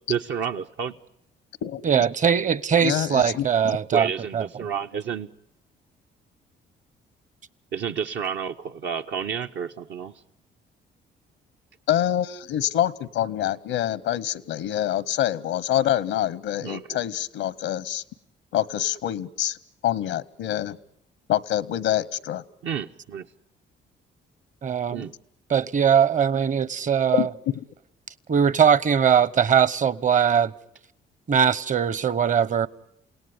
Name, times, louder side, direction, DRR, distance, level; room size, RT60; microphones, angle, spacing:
voice 1, 0.1-1.0 3.9-5.3 7.7-10.1 16.6-17.0 22.6-23.3 24.9-25.1, right 7 dB, 70° right, 0.9 m, -30 dB
voice 2, 1.8-4.1 4.3-4.4 24.6-25.0 25.5-27.3 28.3-30.5 31.3-32.7, right 7 dB, 40° right, 0.9 m, -21 dB
voice 3, 2.8-3.4 11.9-18.0 18.5-19.6 19.8-20.8 21.3-22.4 27.1-27.5, left 12 dB, 90° left, 0.9 m, -26 dB
29.0 x 18.0 x 9.5 m
cardioid pair, 90°, 20 cm